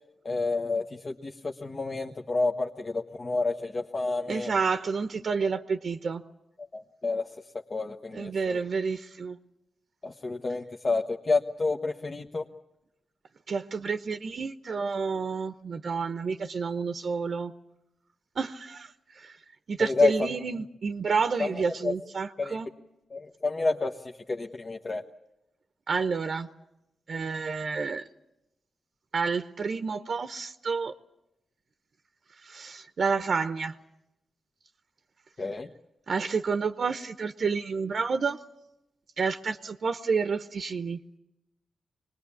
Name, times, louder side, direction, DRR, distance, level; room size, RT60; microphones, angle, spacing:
voice 1, 0.2-4.5 6.7-7.3 7.7-8.6 10.0-12.4 19.8-20.1 21.4-21.9 22.4-22.6 23.1-25.0 35.4-35.7, left 3 dB, 40° left, 2 dB, 1.2 m, -29 dB
voice 2, 4.3-6.2 8.1-9.4 13.5-17.5 18.4-19.4 19.7-22.7 25.9-26.5 27.1-28.0 29.1-30.9 32.4-33.7 36.1-38.4 39.2-41.0, right 5 dB, 60° right, 8 dB, 0.9 m, -29 dB
23.5 x 20.0 x 8.5 m, 0.90 s
cardioid pair, 65°, 0 cm